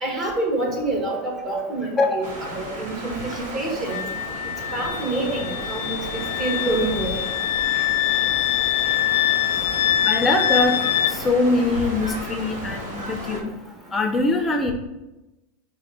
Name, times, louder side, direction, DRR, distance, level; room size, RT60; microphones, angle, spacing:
voice 1, 0.0-4.0 4.7-7.2, right 2 dB, 35° right, -1 dB, 1.9 m, -27 dB
voice 2, 2.0-2.3 3.3-3.4 10.0-10.7 11.1-13.5 13.9-14.7, left 2 dB, 15° left, 4 dB, 0.6 m, -22 dB
sound 1, 2.2-13.4, equal, 80° right, 1.6 m, -34 dB
Wind instrument woodwind instrument, 3.9-11.2, left 13 dB, 80° left, 0.3 m, -24 dB
5.0 x 4.1 x 5.3 m, 1.0 s
supercardioid pair, 125°, 0 cm